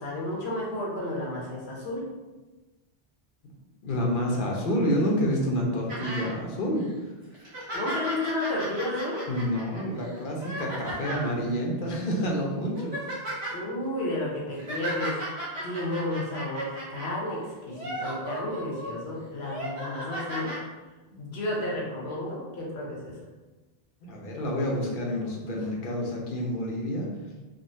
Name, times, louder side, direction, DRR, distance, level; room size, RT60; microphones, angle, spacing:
voice 1, 0.0-2.1 7.7-9.2 13.5-15.2 15.6-20.5 21.2-23.2, left 1 dB, 80° left, -3 dB, 1.1 m, -32 dB
voice 2, 3.8-6.8 9.3-12.9 21.1-21.2 24.0-27.1, equal, 60° left, -2 dB, 0.8 m, -28 dB
sound 1, 5.9-6.3 6.8-6.9 7.3-11.3 12.1-12.2 12.6-13.6 14.3-17.1 17.7-18.9 19.4-20.6 21.5-21.6, right 1 dB, 75° right, 1.3 m, -35 dB
3.7 x 2.0 x 2.6 m, 1.2 s
omnidirectional pair, 1.1 m